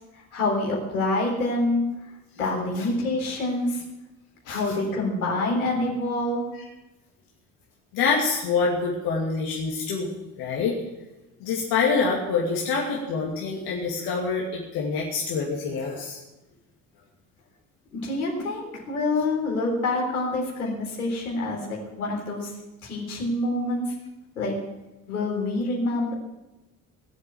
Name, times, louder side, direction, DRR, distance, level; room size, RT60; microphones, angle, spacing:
voice 1, 0.3-1.9 2.4-3.8 4.5-6.4 17.9-22.5 22.8-23.9 24.4-24.6 25.1-26.1, left 2 dB, 85° left, -2 dB, 3.9 m, -26 dB
voice 2, 7.9-10.1 10.4-10.8 11.4-16.2, left 4 dB, 65° left, -3 dB, 2.8 m, -26 dB
18.5 x 8.2 x 7.8 m, 1.0 s
figure-of-eight pair, 50°, 42 cm